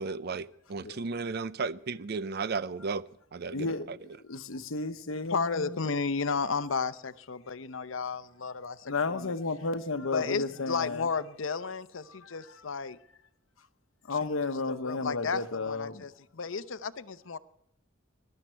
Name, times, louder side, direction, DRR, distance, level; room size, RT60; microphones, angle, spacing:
voice 1, 0.0-3.0 3.3-4.0, right 4 dB, 50° right, 0.5 m, -34 dB
voice 2, 3.5-3.9 4.2-5.8 8.8-11.1 12.1-12.6 14.0-16.0, left 3 dB, 85° left, 1.0 m, -33 dB
voice 3, 5.3-9.3 10.1-13.0 14.2-17.4, left 5 dB, 70° left, 0.7 m, -33 dB
21.0 x 12.0 x 4.5 m
head